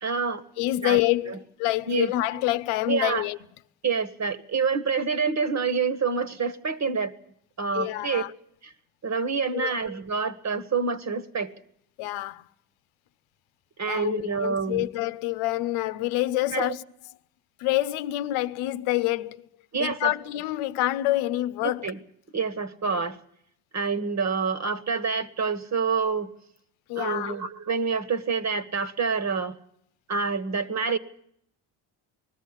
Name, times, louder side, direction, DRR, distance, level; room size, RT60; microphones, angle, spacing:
voice 1, 0.0-0.4 0.8-1.0 1.3-1.4 1.9-2.1 2.9-3.2 3.8-7.1 7.6-8.2 8.6-8.7 9.0-11.5 13.8-14.9 16.5-16.7 19.7-20.1 21.6-22.0 22.3-23.2 23.7-26.3 26.9-29.5 30.1-31.0, right 5 dB, 35° right, 1.6 m, -27 dB
voice 2, 0.6-3.4 7.7-8.3 9.5-9.8 12.0-12.5 13.9-16.8 17.6-19.5 19.8-21.9 22.9-23.0 26.9-27.4, left 16 dB, 85° left, 0.9 m, -27 dB
20.5 x 13.5 x 9.8 m
supercardioid pair, 90°, 48 cm